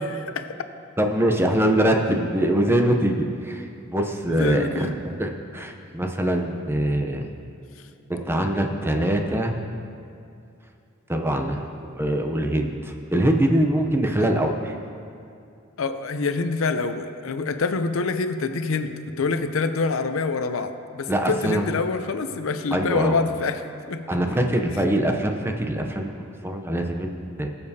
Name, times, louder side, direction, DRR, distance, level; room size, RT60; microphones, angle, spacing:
voice 1, 0.1-0.5 4.3-4.9 15.8-24.0, left 4 dB, 80° left, 9 dB, 0.5 m, -26 dB
voice 2, 1.0-7.3 8.1-9.6 11.1-14.8 21.1-21.6 22.7-23.2 24.1-27.5, right 1 dB, 10° right, 3 dB, 0.6 m, -23 dB
20.0 x 6.9 x 2.8 m, 2.6 s
head